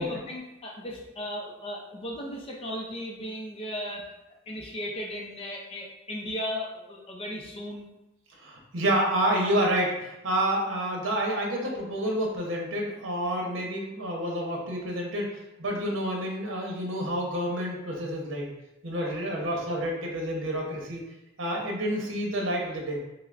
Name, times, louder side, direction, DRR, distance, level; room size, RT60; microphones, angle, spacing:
voice 1, 0.0-4.1 4.5-7.9 18.9-19.6 21.5-21.6, equal, 30° left, -2 dB, 0.4 m, -36 dB
voice 2, 8.4-15.3 15.6-18.5 18.8-21.0 21.4-23.0, right 1 dB, 85° right, -1 dB, 0.8 m, -29 dB
5.5 x 2.0 x 2.4 m, 0.93 s
head